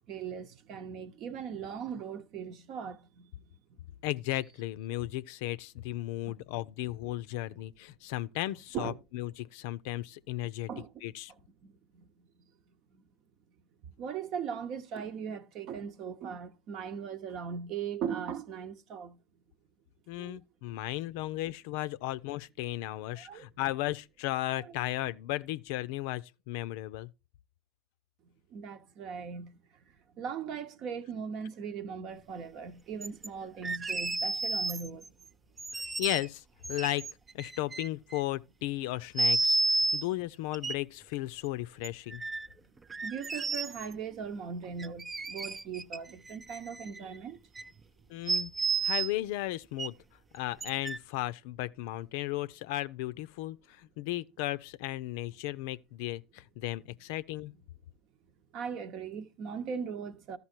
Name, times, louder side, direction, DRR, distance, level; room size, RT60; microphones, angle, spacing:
voice 1, 0.1-3.3 6.2-6.4 7.5-7.6 8.7-9.0 10.7-11.1 11.6-12.0 12.9-13.0 13.8-19.2 20.2-20.4 23.1-23.5 24.5-24.7 28.5-29.5 30.1-35.1 43.0-47.4 58.5-60.4, right 7 dB, 50° right, 1.0 m, -39 dB
voice 2, 4.0-10.7 11.0-11.3 20.1-27.1 35.7-36.4 36.7-37.0 37.3-42.2 48.1-48.5 48.8-50.0 50.3-57.5, left 16 dB, 70° left, 0.5 m, -35 dB
sound 1, 33.0-33.3 33.6-35.1 35.6-36.3 36.6-38.2 39.2-40.0 40.5-40.7 41.8-42.5 42.9-43.9 44.8-46.0 46.3-47.2 47.6-47.7 48.3-49.1 49.8-49.9 50.6-51.0, right 3 dB, 20° right, 0.4 m, -31 dB
13.0 x 5.4 x 4.4 m
hypercardioid pair, 95°, 0 cm